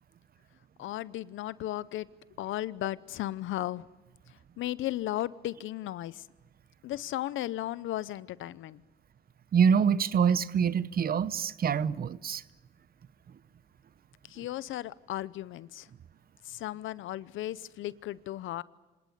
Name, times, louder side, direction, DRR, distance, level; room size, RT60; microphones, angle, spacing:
voice 1, 0.8-2.1 2.4-3.9 4.3-6.2 6.8-8.8 14.3-15.9 16.4-18.6, left 14 dB, 80° left, 0.7 m, -35 dB
voice 2, 9.5-12.4, right 7 dB, 50° right, 0.8 m, -25 dB
26.5 x 18.5 x 9.4 m
cardioid pair, 90°, 20 cm